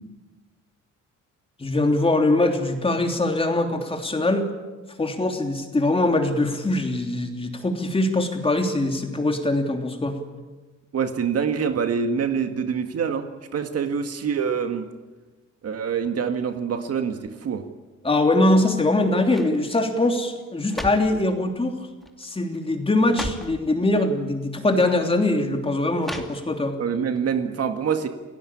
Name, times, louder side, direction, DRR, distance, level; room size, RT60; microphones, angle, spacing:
voice 1, 1.6-4.5 5.0-10.2 18.0-21.8 22.2-26.8, left 2 dB, 15° left, 4 dB, 3.2 m, -22 dB
voice 2, 10.9-14.9 15.6-17.7 26.8-28.1, right 6 dB, 50° right, 7 dB, 1.9 m, -25 dB
sound 1, 18.5-18.8 19.2-19.6 20.4-21.2 22.0-22.3 22.5-22.6 23.0-23.6 24.5-24.6 26.0-26.7 27.1-27.2, equal, ahead, 2.6 m, -35 dB
28.5 x 18.0 x 8.6 m, 1.3 s
cardioid pair, 120°, 31 cm